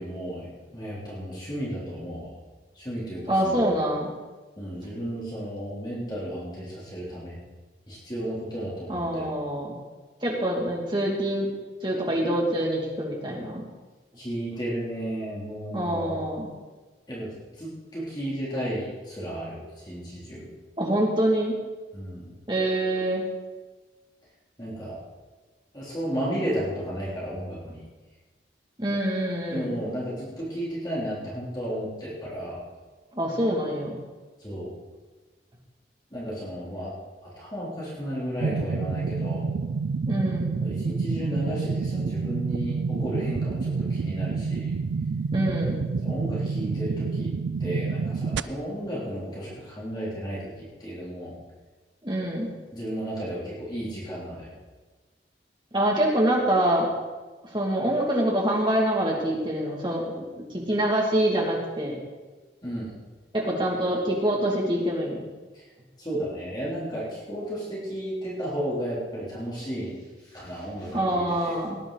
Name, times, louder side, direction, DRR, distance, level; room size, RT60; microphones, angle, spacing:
voice 1, 0.0-2.3 2.7-3.7 4.6-7.4 7.9-9.3 14.2-16.3 17.1-20.5 21.9-22.3 24.6-25.0 25.7-27.8 29.5-32.6 34.4-34.7 36.1-36.9 37.2-39.5 40.6-44.7 46.0-47.3 47.6-51.4 52.7-54.5 62.6-63.0 65.5-65.6 66.0-71.5, equal, 25° left, -7 dB, 3.4 m, -33 dB
voice 2, 3.3-4.1 8.9-9.7 10.2-11.5 11.8-13.6 15.7-16.5 20.8-21.5 22.5-23.2 28.8-29.7 33.1-34.0 40.1-40.5 45.3-45.8 52.0-52.5 55.7-56.9 57.4-62.0 63.3-65.2 70.9-71.8, right 1 dB, 25° right, -3 dB, 2.5 m, -25 dB
sound 1, 38.4-48.4, right 4 dB, 85° right, 0.4 m, -28 dB
18.0 x 10.0 x 4.1 m, 1.3 s
head